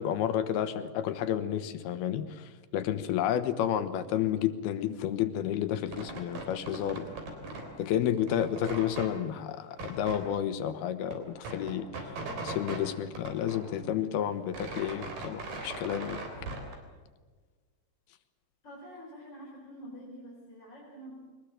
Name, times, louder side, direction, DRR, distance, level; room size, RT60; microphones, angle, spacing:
voice 1, 0.0-7.0 7.8-12.1 12.4-16.2, left 10 dB, 90° left, 11 dB, 3.1 m, -31 dB
sound 1, 5.8-7.7 8.0-9.1 9.7-10.2 10.7-10.8 11.0-12.8 13.1-14.0 14.3-16.7, right 3 dB, 65° right, 5.1 m, -40 dB
voice 2, 18.6-21.3, equal, 30° left, -4 dB, 4.6 m, -47 dB
22.5 x 20.0 x 7.6 m, 1.4 s
omnidirectional pair, 4.4 m